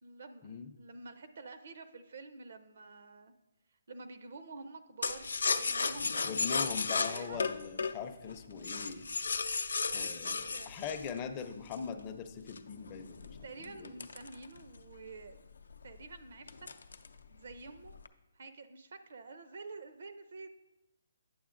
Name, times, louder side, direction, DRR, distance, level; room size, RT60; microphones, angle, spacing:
voice 1, 0.0-3.3 3.9-7.5 9.0-9.2 9.9-10.8 13.4-15.4 15.8-16.7 17.3-17.9 18.3-20.5, right 3 dB, 55° right, 9 dB, 0.5 m, -49 dB
sound 1, 5.0-11.9 12.5-14.9 15.3-15.4 15.7-16.0 16.5-17.2 17.5-18.1, left 4 dB, 85° left, 0.5 m, -34 dB
voice 2, 6.2-9.1 9.9-13.9, left 6 dB, 20° left, 6 dB, 0.5 m, -41 dB
9.3 x 6.7 x 2.5 m, 0.92 s
hypercardioid pair, 170°, 0 cm